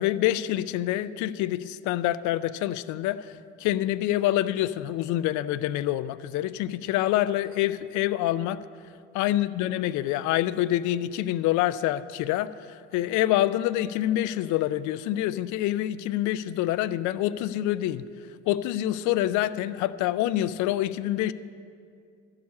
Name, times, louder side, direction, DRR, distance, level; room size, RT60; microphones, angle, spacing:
voice 1, 0.0-8.6 9.1-18.0 18.5-21.3, left 14 dB, 55° left, 16 dB, 0.5 m, -26 dB
12.5 x 4.8 x 8.4 m, 2.3 s
hypercardioid pair, 70°, 35 cm